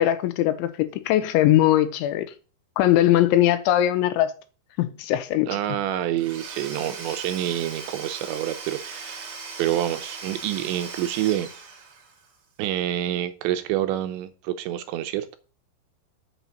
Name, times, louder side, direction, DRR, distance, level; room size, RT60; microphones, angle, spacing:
voice 1, 0.0-2.3 2.8-4.3 4.8-5.5, left 13 dB, 80° left, 3.0 m, -20 dB
voice 2, 5.4-11.5 12.6-15.4, right 12 dB, 80° right, 2.8 m, -27 dB
Domestic sounds home sounds / Tools, 6.2-12.3, right 4 dB, 55° right, 1.5 m, -39 dB
7.1 x 7.1 x 5.6 m
omnidirectional pair, 5.5 m